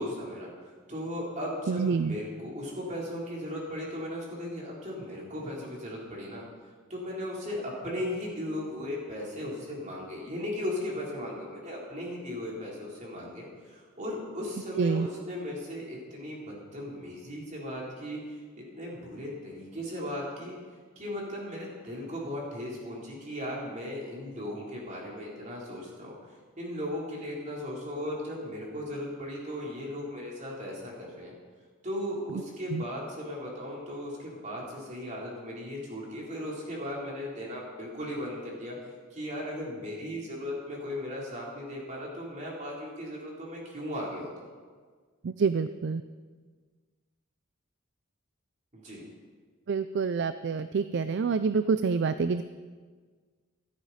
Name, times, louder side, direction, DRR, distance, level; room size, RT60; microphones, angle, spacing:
voice 1, 0.0-6.4 6.9-18.4 18.7-20.6 21.0-31.3 31.8-38.8 39.1-44.5 48.7-49.0, left 1 dB, 35° right, -4 dB, 3.8 m, -37 dB
voice 2, 1.7-2.1 14.8-15.1 32.7-32.8 45.2-46.0 49.7-52.4, right 5 dB, 55° right, 12 dB, 0.4 m, -27 dB
15.0 x 13.5 x 4.2 m, 1.5 s
head